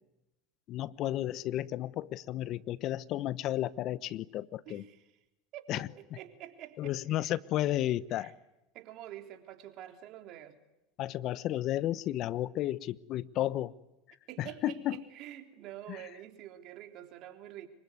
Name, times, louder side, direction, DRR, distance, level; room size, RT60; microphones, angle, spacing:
voice 1, 0.7-4.8 5.7-5.9 6.8-8.3 11.0-13.7 14.4-15.0 15.9-16.0, left 13 dB, 50° left, 1.0 m, -33 dB
voice 2, 4.7-5.0 5.5-5.9 6.2-7.3 8.1-8.3 8.7-10.6 14.3-17.7, right 12 dB, 55° right, 3.6 m, -47 dB
26.0 x 23.5 x 9.6 m
hypercardioid pair, 85°, 0 cm